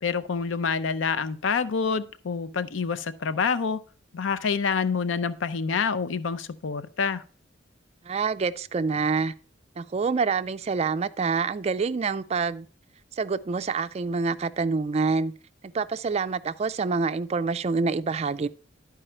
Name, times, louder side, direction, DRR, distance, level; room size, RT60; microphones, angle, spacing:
voice 1, 0.0-3.8 4.1-7.2, left 5 dB, 80° left, 0.5 m, -27 dB
voice 2, 8.0-9.3 9.8-12.7 13.1-15.3 15.6-18.5, right 4 dB, 35° right, 0.4 m, -26 dB
11.0 x 4.8 x 4.3 m
head